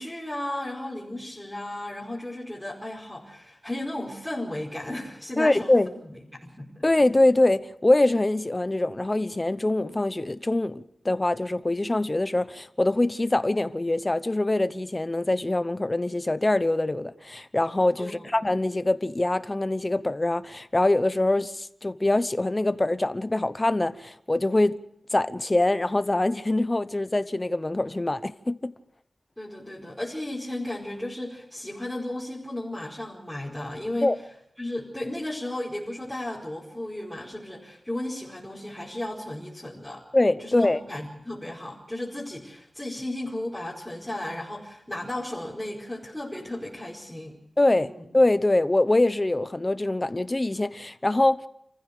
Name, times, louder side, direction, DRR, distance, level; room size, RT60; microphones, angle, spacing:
voice 1, 0.0-6.7 18.0-18.3 29.4-34.1 34.6-40.0 40.4-47.4 47.8-48.0, left 1 dB, 5° left, 4.8 m, -34 dB
voice 2, 5.4-5.9 6.8-24.8 25.1-28.7 34.0-34.2 40.1-40.8 47.6-51.4, left 2 dB, 25° left, 1.0 m, -24 dB
28.0 x 15.0 x 6.6 m
wide cardioid pair, 85°, 0 cm